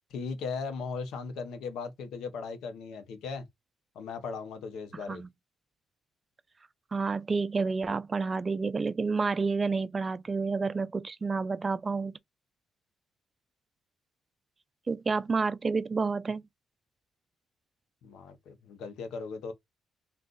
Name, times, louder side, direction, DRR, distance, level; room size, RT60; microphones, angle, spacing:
voice 1, 0.1-3.5 3.9-5.2 18.0-19.5, left 5 dB, 80° left, 0.8 m, -38 dB
voice 2, 6.9-12.1 14.9-16.5, right 4 dB, 30° right, 0.3 m, -29 dB
2.4 x 2.4 x 3.8 m
cardioid pair, 90°, 0 cm